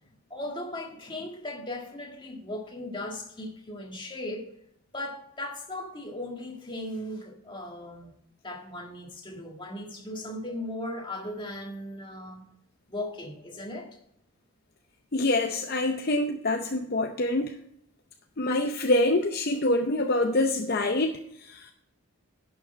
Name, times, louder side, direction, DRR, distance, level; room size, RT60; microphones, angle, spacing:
voice 1, 0.3-4.5 4.9-8.1 8.4-12.5 12.9-14.0, left 1 dB, 20° left, 1.7 m, -37 dB
voice 2, 15.1-17.6 18.4-21.7, left 2 dB, 45° left, 0.6 m, -26 dB
11.5 x 6.3 x 4.3 m
head